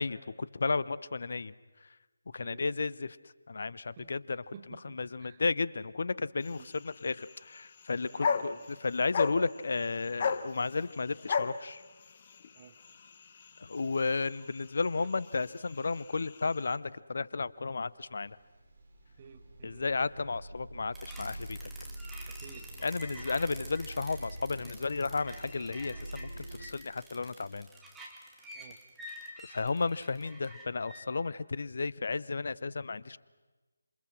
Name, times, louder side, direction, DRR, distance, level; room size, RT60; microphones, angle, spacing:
voice 1, 0.0-1.5 2.3-3.2 3.5-4.4 4.8-11.8 13.6-18.4 19.6-21.7 22.8-27.7 29.4-33.2, left 4 dB, 50° left, 19 dB, 0.8 m, -33 dB
voice 2, 2.4-2.8 4.0-4.1 4.5-5.4 6.5-6.7 8.1-8.7 12.5-12.8 15.0-15.1 19.2-20.0 22.2-22.7 23.1-23.2 28.5-28.8, right 7 dB, 25° right, 8 dB, 1.5 m, -53 dB
sound 1, 6.4-16.8, left 6 dB, 35° left, 1.1 m, -38 dB
sound 2, 17.6-17.8 18.1-26.7, right 1 dB, 45° right, 5.4 m, -45 dB
sound 3, 20.9-31.0, right 1 dB, 5° right, 2.4 m, -49 dB
28.0 x 27.0 x 6.3 m, 1.2 s
figure-of-eight pair, 150°, 0 cm